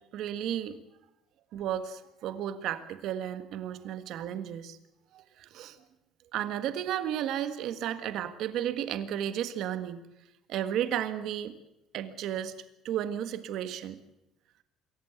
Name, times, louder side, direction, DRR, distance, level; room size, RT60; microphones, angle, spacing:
voice 1, 0.1-0.8 1.5-4.8 5.1-5.8 6.3-10.0 10.5-11.5 11.9-12.5 12.8-14.0, right 10 dB, 55° right, 11 dB, 1.6 m, -33 dB
26.0 x 14.5 x 8.1 m, 0.89 s
cardioid pair, 160°, 0 cm